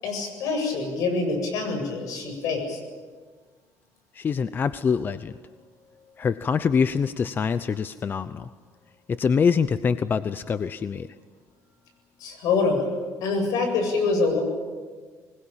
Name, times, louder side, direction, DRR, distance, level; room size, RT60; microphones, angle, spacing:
voice 1, 0.0-2.8 12.2-12.8 13.2-14.4, left 4 dB, 75° left, 4 dB, 7.9 m, -25 dB
voice 2, 4.1-5.4 6.2-8.5 9.1-11.1, left 6 dB, 35° left, 13 dB, 0.7 m, -24 dB
24.5 x 21.0 x 8.9 m, 1.5 s
cardioid pair, 130°, 6 cm